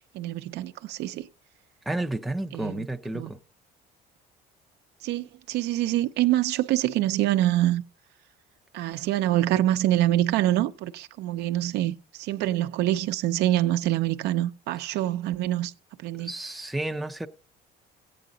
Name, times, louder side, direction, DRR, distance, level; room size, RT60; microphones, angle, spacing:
voice 1, 0.1-1.3 2.5-2.9 3.1-3.3 5.0-7.8 8.7-15.7 16.0-16.3, right 14 dB, 75° right, 0.6 m, -25 dB
voice 2, 1.9-3.4 16.2-17.3, right 1 dB, ahead, 0.5 m, -31 dB
14.0 x 8.6 x 3.9 m
cardioid pair, 150°, 17 cm